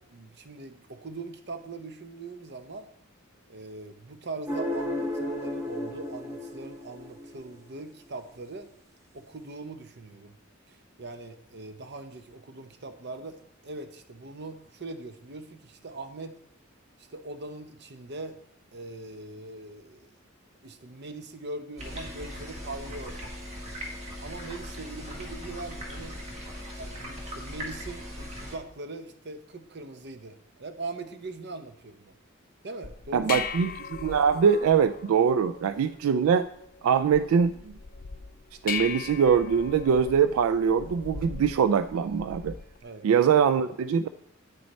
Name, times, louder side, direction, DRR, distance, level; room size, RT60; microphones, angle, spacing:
voice 1, 0.0-2.9 3.5-8.7 9.1-10.4 10.7-16.4 17.0-18.4 18.7-20.1 20.6-23.3 24.2-26.2 26.8-32.2 32.6-33.4 42.8-43.1, right 2 dB, 55° right, 9 dB, 0.7 m, -41 dB
sound 1, 4.5-7.8, left 1 dB, 15° right, 1.0 m, -33 dB
sound 2, 21.8-28.6, equal, 30° right, 1.6 m, -39 dB
sound 3, 32.8-42.8, left 7 dB, 45° left, 0.4 m, -39 dB
voice 2, 33.1-36.5 36.8-37.7 38.6-42.6 43.0-44.1, right 7 dB, 85° right, 12 dB, 0.3 m, -23 dB
9.2 x 6.3 x 4.1 m, 0.71 s
head